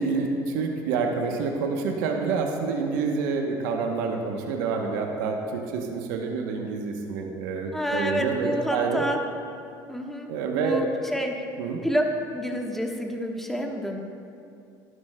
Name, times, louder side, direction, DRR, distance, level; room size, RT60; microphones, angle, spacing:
voice 1, 0.0-9.1 10.3-10.8 11.6-11.8, right 4 dB, 80° right, 2 dB, 0.9 m, -27 dB
voice 2, 7.7-9.2 9.9-10.3 10.6-11.4 11.8-12.0 12.3-14.0, equal, 5° left, 2 dB, 1.2 m, -28 dB
12.5 x 11.0 x 2.2 m, 2.5 s
supercardioid pair, 85°, 10 cm